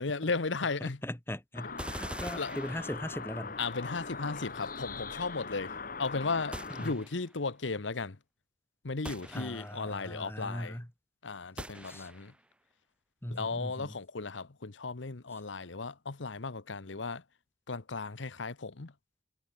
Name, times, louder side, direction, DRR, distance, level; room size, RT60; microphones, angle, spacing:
voice 1, 0.0-1.0 2.3-2.6 3.6-8.2 8.8-10.8 11.2-12.3 13.3-17.2 17.7-18.9, left 4 dB, 85° left, 1.1 m, -35 dB
voice 2, 1.0-3.6 6.8-6.9 9.3-10.9 11.8-12.1 13.2-13.9, left 1 dB, 15° left, 1.7 m, -39 dB
sound 1, 1.5-6.9, left 4 dB, 50° left, 2.5 m, -41 dB
sound 2, 1.8-3.4 6.5-7.4 9.0-10.0 11.6-12.4, right 1 dB, 5° right, 0.8 m, -44 dB
head